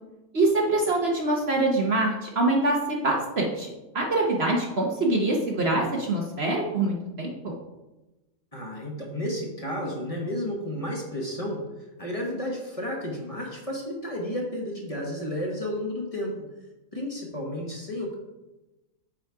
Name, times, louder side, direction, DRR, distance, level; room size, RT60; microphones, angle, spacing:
voice 1, 0.3-3.7 3.9-7.6, right 2 dB, 50° right, 0 dB, 1.1 m, -24 dB
voice 2, 8.5-16.4 16.9-18.1, left 1 dB, 25° left, -2 dB, 1.4 m, -32 dB
8.9 x 4.1 x 4.7 m, 1.0 s
omnidirectional pair, 1.6 m